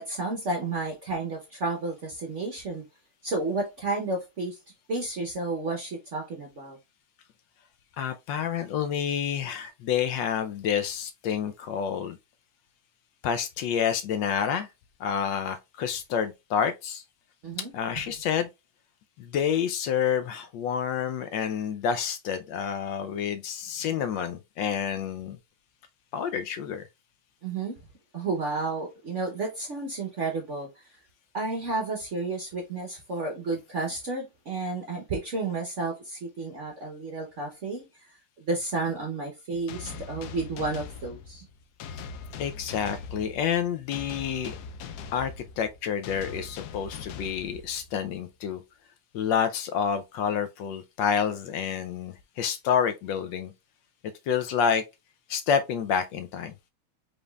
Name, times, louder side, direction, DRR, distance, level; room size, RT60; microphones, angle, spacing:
voice 1, 0.0-2.8 3.2-4.6 4.9-6.8 17.4-17.7 27.4-27.8 28.1-30.8 31.3-37.8 38.4-41.5, right 3 dB, 55° right, 0.8 m, -31 dB
voice 2, 8.0-12.2 13.2-14.7 15.0-17.0 17.7-18.5 19.2-25.4 26.1-26.8 42.4-44.5 45.1-48.6 49.1-53.5 54.3-54.8 55.3-56.5, left 7 dB, 75° left, 1.1 m, -28 dB
sound 1, 39.7-48.1, left 5 dB, 90° left, 0.8 m, -41 dB
5.1 x 3.9 x 2.3 m
omnidirectional pair, 2.3 m